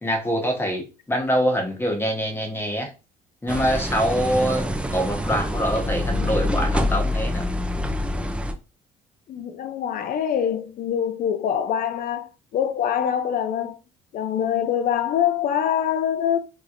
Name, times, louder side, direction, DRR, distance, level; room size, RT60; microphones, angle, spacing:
voice 1, 0.0-2.9 3.4-4.6 4.9-7.4, equal, 15° left, 1.1 m, -24 dB
sound 1, 3.5-8.5, left 1 dB, 5° right, 0.5 m, -25 dB
voice 2, 9.3-13.8 14.1-16.4, left 9 dB, 55° left, 0.6 m, -24 dB
3.5 x 3.0 x 2.5 m
cardioid pair, 110°, 17 cm